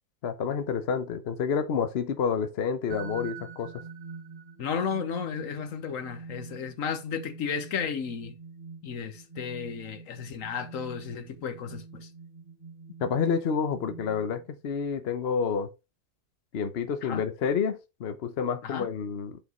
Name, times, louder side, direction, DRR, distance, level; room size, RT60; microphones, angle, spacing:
voice 1, 0.2-3.8 13.0-15.7 16.5-19.4, left 6 dB, 55° left, 1.0 m, -29 dB
sound 1, 2.9-14.6, right 5 dB, 25° right, 2.2 m, -45 dB
voice 2, 4.6-8.4 8.8-12.1 17.0-17.2 18.6-18.9, left 6 dB, 75° left, 1.3 m, -33 dB
8.8 x 5.0 x 3.0 m
omnidirectional pair, 1.4 m